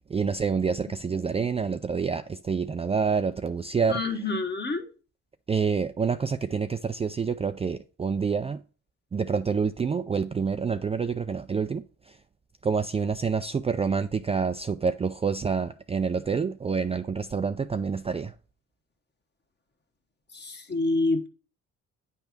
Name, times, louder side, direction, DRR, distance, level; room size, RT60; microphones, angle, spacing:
voice 1, 0.1-4.0 5.5-8.6 9.1-12.2 12.6-18.3, right 5 dB, 20° right, 0.4 m, -27 dB
voice 2, 3.9-4.9 20.3-21.3, left 2 dB, 35° left, 1.3 m, -27 dB
9.2 x 3.4 x 5.9 m
cardioid pair, 90°, 30 cm